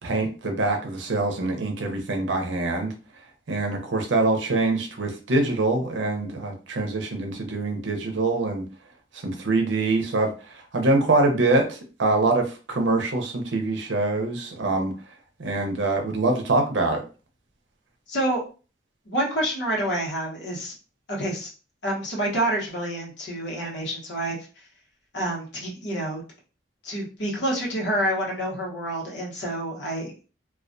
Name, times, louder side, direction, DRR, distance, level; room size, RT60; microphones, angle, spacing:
voice 1, 0.0-2.9 3.5-8.6 9.1-14.9 15.4-17.0, right 2 dB, 90° right, 3 dB, 0.6 m, -24 dB
voice 2, 18.1-18.4 19.1-20.7 21.1-21.5 21.8-24.7 25.1-26.2 26.8-30.2, right 1 dB, 80° left, -3 dB, 0.9 m, -28 dB
2.3 x 2.2 x 2.5 m, 0.35 s
head